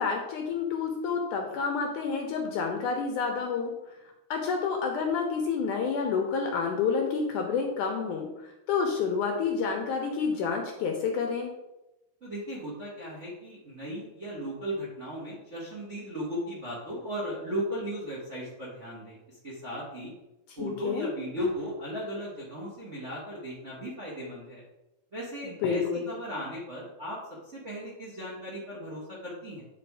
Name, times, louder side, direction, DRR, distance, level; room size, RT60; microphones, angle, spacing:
voice 1, 0.0-3.7 4.3-11.5 20.5-21.1 25.4-26.1, left 5 dB, 75° left, 2 dB, 1.9 m, -29 dB
voice 2, 12.2-20.1 20.6-24.6 25.1-27.2 27.5-29.6, equal, 65° right, -5 dB, 0.7 m, -36 dB
9.6 x 3.4 x 4.6 m, 0.98 s
omnidirectional pair, 4.2 m